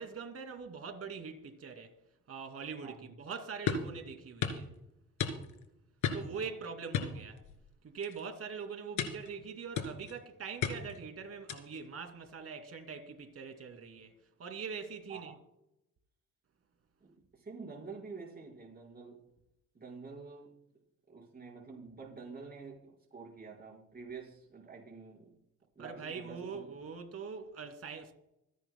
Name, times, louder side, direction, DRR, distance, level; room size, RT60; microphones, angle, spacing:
voice 1, 0.0-1.9 2.3-4.7 6.1-7.4 7.8-14.1 14.4-15.3 25.8-28.1, right 5 dB, 50° right, 2.5 m, -43 dB
voice 2, 2.8-3.2 6.4-6.5 15.1-15.2 17.0-19.2 19.7-20.5 21.1-25.3 25.7-26.8, right 4 dB, 30° right, 4.7 m, -48 dB
sound 1, 3.7-3.9 4.4-4.6 5.2-5.6 6.0-6.4 6.9-7.7 8.0-8.3 9.0-9.3 9.8-10.2 10.6-11.0 11.5-11.8, left 7 dB, 80° left, 2.4 m, -34 dB
26.0 x 10.0 x 2.2 m
cardioid pair, 90°, 30 cm